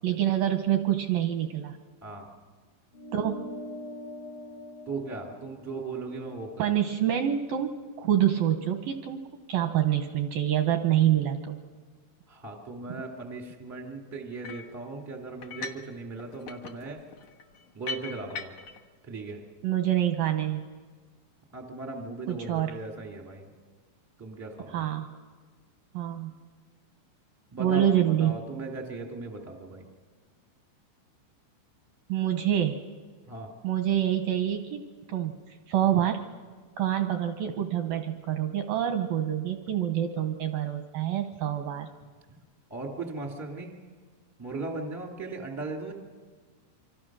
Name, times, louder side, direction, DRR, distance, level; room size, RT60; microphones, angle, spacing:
voice 1, 0.0-1.8 3.1-3.5 6.6-9.2 9.5-11.6 19.6-20.6 22.3-22.7 24.7-25.1 25.9-26.3 27.6-28.4 32.1-32.8 33.6-35.3 35.7-36.2 36.8-41.9, right 11 dB, 80° right, 6 dB, 2.1 m, -26 dB
sound 1, 2.9-7.7, equal, 60° left, 1.6 m, -44 dB
voice 2, 4.8-6.7 12.3-17.0 17.7-18.5 19.0-19.4 21.5-23.5 24.2-24.8 27.5-29.9 33.3-33.6 42.3-42.4 42.7-43.7 44.4-45.9, right 3 dB, 20° right, 1 dB, 0.4 m, -38 dB
sound 2, 14.4-14.7 15.4-15.9 16.2-18.8, left 5 dB, 80° left, 1.6 m, -40 dB
27.0 x 25.0 x 6.2 m, 1.5 s
omnidirectional pair, 5.5 m